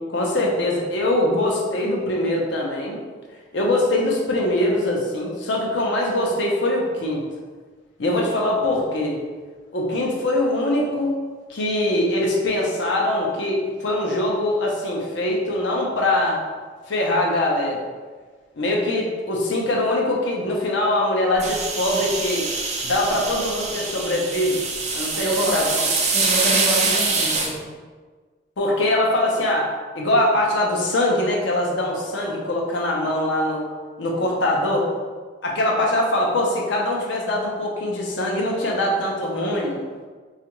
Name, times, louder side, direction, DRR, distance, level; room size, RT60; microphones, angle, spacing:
voice 1, 0.0-3.0 3.5-7.2 8.0-9.2 9.7-11.2 11.5-16.4 16.9-17.8 18.6-22.5 22.8-24.6 24.9-25.7 26.9-27.1 28.6-33.7 34.0-34.9 35.4-39.8, left 1 dB, 80° left, -1 dB, 0.6 m, -22 dB
sound 1, 21.4-27.5, right 3 dB, 40° right, 0.5 m, -24 dB
voice 2, 25.2-27.6, right 1 dB, ahead, -8 dB, 0.9 m, -26 dB
4.3 x 2.4 x 2.9 m, 1.5 s
head